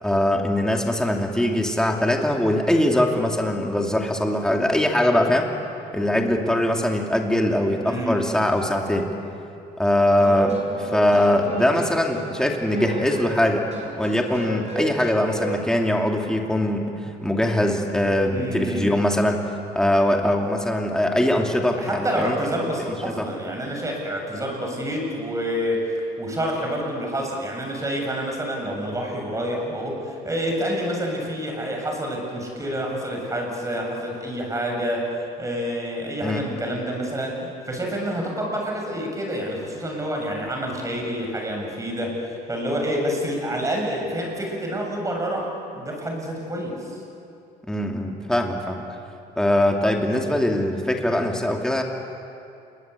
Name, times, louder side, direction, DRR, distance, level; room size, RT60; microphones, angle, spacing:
voice 1, 0.0-5.5 5.9-9.1 9.8-13.7 13.9-16.8 17.2-19.4 19.7-22.4 23.0-23.3 36.2-36.4 47.7-48.8 49.4-51.8, left 1 dB, 5° left, 1 dB, 2.7 m, -22 dB
voice 2, 7.8-8.2 18.3-18.9 21.8-47.0, equal, 20° right, 1 dB, 7.4 m, -28 dB
sound 1, 10.0-15.6, right 2 dB, 40° right, 6.9 m, -33 dB
28.5 x 22.0 x 8.4 m, 2.6 s
cardioid pair, 110°, 17 cm